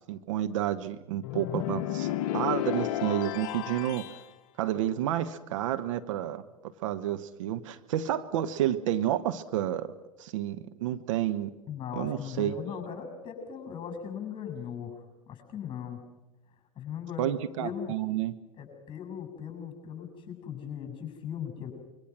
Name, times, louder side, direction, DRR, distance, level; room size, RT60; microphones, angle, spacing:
voice 1, 0.1-4.0 4.6-6.4 6.8-9.9 10.2-11.5 12.0-12.5 17.2-18.3, right 12 dB, 60° right, 10 dB, 1.2 m, -30 dB
sound 1, 1.2-4.2, left 13 dB, 55° left, 0.8 m, -32 dB
voice 2, 11.7-16.0 16.8-17.3 17.6-17.9 18.5-21.7, left 8 dB, 25° left, 5 dB, 7.3 m, -38 dB
25.5 x 23.5 x 6.1 m, 1.0 s
figure-of-eight pair, 90°, 18 cm